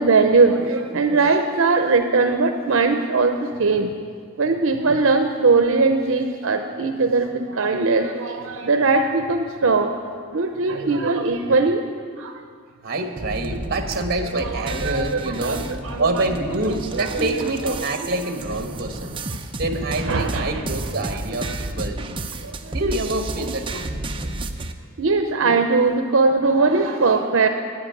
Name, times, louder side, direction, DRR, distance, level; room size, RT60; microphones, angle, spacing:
voice 1, 0.0-3.9 4.4-9.9 10.3-11.8 12.2-12.4 14.4-16.2 16.9-17.1 17.4-17.5 19.3-19.4 20.0-20.6 21.4-21.7 22.4-22.8 25.0-27.5, right 4 dB, 80° right, 6 dB, 0.7 m, -20 dB
voice 2, 12.8-15.6 16.0-19.1 19.6-22.2 22.7-23.9, right 2 dB, 50° right, 5 dB, 1.3 m, -26 dB
sound 1, 13.2-24.7, right 2 dB, 25° right, 0.6 m, -31 dB
10.0 x 9.6 x 9.2 m, 2.1 s
head